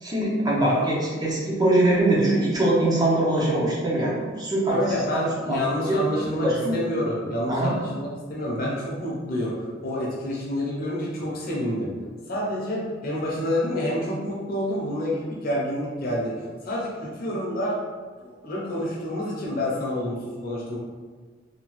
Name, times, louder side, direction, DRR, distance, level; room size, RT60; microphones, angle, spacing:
voice 1, 0.0-4.8 5.1-5.2 5.5-5.6 5.9-6.0 6.4-6.8 7.5-7.7, right 1 dB, 20° right, -5 dB, 0.5 m, -22 dB
voice 2, 4.7-11.9 12.3-17.8 18.2-20.8, left 1 dB, 50° left, -4 dB, 0.7 m, -28 dB
2.8 x 2.2 x 3.0 m, 1.5 s
head